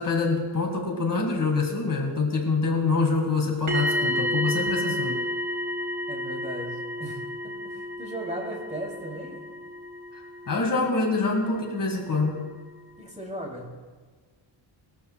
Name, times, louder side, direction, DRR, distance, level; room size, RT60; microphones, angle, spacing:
voice 1, 0.0-5.2 10.5-12.5, left 3 dB, 40° left, 1 dB, 1.9 m, -25 dB
sound 1, 3.7-11.6 11.8-12.1, equal, 40° right, 3.6 m, -31 dB
voice 2, 6.1-9.4 13.0-13.7, right 1 dB, 15° right, -1 dB, 3.1 m, -37 dB
20.5 x 13.5 x 2.3 m, 1.4 s
wide cardioid pair, 115°, 48 cm